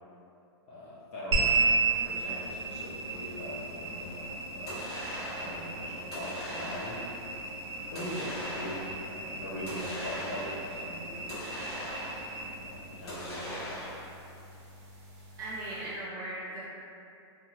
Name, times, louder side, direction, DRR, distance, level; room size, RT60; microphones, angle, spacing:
voice 1, 0.7-4.8 5.3-7.0 7.9-11.7 12.5-13.9, left 1 dB, 30° left, -8 dB, 0.5 m, -41 dB
sound 1, 1.3-15.9, right 3 dB, 65° right, 0.9 m, -35 dB
sound 2, 4.7-5.6 6.1-7.2 8.0-9.0 9.7-10.7 11.3-12.4 13.1-14.2, equal, 65° left, 1.2 m, -40 dB
voice 2, 15.4-16.7, right 1 dB, 20° right, -9 dB, 0.7 m, -38 dB
2.8 x 2.3 x 2.9 m, 2.6 s
supercardioid pair, 170°, 15 cm